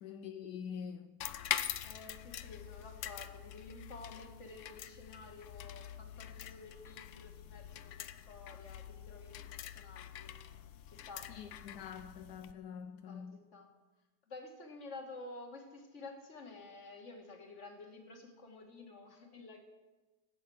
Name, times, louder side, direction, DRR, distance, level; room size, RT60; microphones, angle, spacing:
voice 1, 0.0-1.1 11.3-13.4, left 7 dB, 85° left, 1.2 m, -45 dB
sound 1, 1.2-12.5, left 10 dB, 65° left, 0.8 m, -44 dB
voice 2, 1.8-10.4 10.9-11.3 13.1-13.2 13.5-13.7 14.3-19.6, left 3 dB, 45° left, 2.1 m, -51 dB
14.5 x 8.5 x 6.2 m
omnidirectional pair, 1.8 m